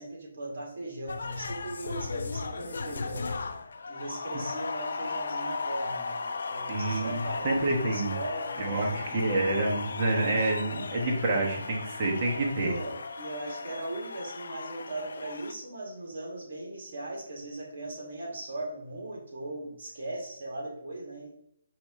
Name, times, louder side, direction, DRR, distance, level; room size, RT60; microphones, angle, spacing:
voice 1, 0.0-3.2 3.9-9.3 9.6-10.5 12.6-21.3, right 2 dB, 60° right, -2 dB, 1.9 m, -39 dB
sound 1, 1.1-15.5, left 4 dB, 75° left, 0.4 m, -36 dB
voice 2, 6.7-8.1 8.6-12.8, right 2 dB, 30° right, -1 dB, 1.2 m, -28 dB
4.9 x 2.9 x 3.7 m, 0.75 s
hypercardioid pair, 160°, 0 cm